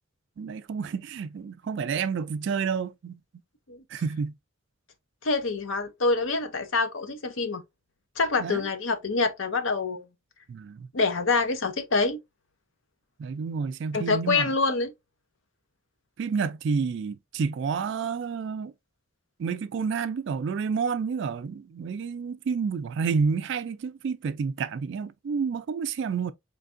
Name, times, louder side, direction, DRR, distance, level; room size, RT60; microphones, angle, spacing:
voice 1, 0.4-3.2 3.9-4.4 8.4-8.7 10.5-10.9 13.2-14.5 16.2-18.7 19.4-26.3, right 5 dB, 60° right, 0.3 m, -29 dB
voice 2, 5.2-7.6 8.2-10.1 10.9-12.2 13.9-14.9, left 3 dB, 70° left, 0.7 m, -26 dB
4.5 x 3.3 x 2.5 m
head